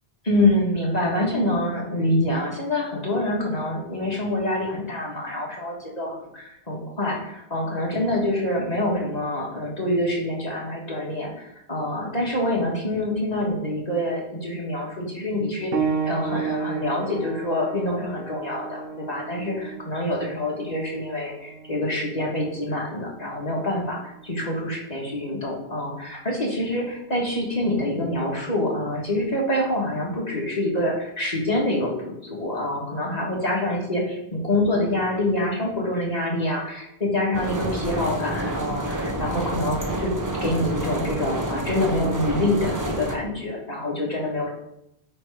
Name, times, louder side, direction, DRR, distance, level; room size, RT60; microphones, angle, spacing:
voice 1, 0.3-15.7 16.0-40.1 40.4-44.5, left 1 dB, 40° left, -2 dB, 1.8 m, -26 dB
sound 1, 15.7-25.9 26.9-27.0 27.8-27.9, right 6 dB, 65° right, 1.0 m, -34 dB
sound 2, 37.3-43.2, right 1 dB, 20° right, 0.8 m, -29 dB
8.7 x 3.4 x 4.8 m, 0.81 s
omnidirectional pair, 1.1 m